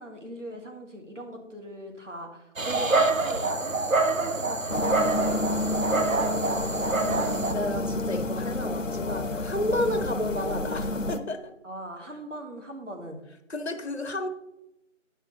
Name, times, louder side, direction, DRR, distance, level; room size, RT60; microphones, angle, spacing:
voice 1, 0.0-6.0 11.6-13.2, right 1 dB, 65° right, 2 dB, 1.7 m, -40 dB
Dog, 2.6-7.5, right 3 dB, 85° right, 1.0 m, -26 dB
sound 1, 4.7-11.2, left 2 dB, 70° left, 0.7 m, -30 dB
voice 2, 7.0-11.5 13.5-14.3, left 1 dB, 55° left, 6 dB, 1.1 m, -31 dB
10.5 x 5.6 x 3.1 m, 0.90 s
figure-of-eight pair, 180°, 39 cm